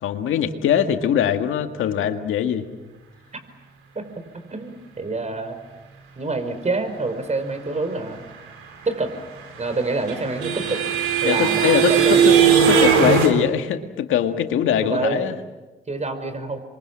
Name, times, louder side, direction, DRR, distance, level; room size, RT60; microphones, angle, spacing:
voice 1, 0.0-2.6 11.2-12.4 12.7-15.3, left 9 dB, 75° left, 7 dB, 2.0 m, -22 dB
voice 2, 4.3-5.6 6.2-8.3 8.9-9.1 9.6-10.8 11.2-12.3 14.8-15.3 15.9-16.6, right 3 dB, 35° right, 9 dB, 5.2 m, -26 dB
sound 1, 9.4-13.3, right 8 dB, 85° right, 3.9 m, -18 dB
27.0 x 23.0 x 7.4 m, 1.2 s
supercardioid pair, 55°, 21 cm